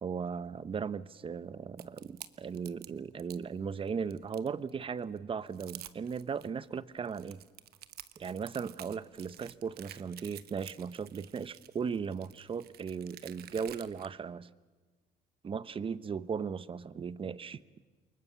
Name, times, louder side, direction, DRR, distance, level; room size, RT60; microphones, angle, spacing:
voice 1, 0.0-7.4 8.2-14.5 15.4-17.6, right 6 dB, 30° right, 0.8 m, -37 dB
sound 1, 1.8-3.4 3.9-4.7 5.2-5.3 5.5-6.5 7.0-14.1, right 12 dB, 65° right, 1.1 m, -50 dB
28.5 x 23.5 x 7.0 m
cardioid pair, 110°, 17 cm